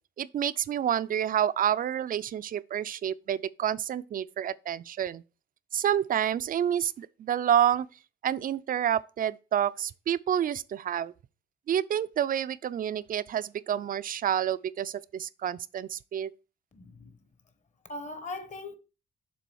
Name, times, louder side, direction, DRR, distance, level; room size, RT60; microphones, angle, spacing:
voice 1, 0.2-5.2 5.7-7.9 8.2-11.1 11.7-16.3, right 10 dB, 45° right, 0.4 m, -28 dB
voice 2, 16.7-17.2 17.9-18.7, left 2 dB, 35° left, 1.1 m, -39 dB
6.9 x 3.7 x 4.6 m
cardioid pair, 90°, 20 cm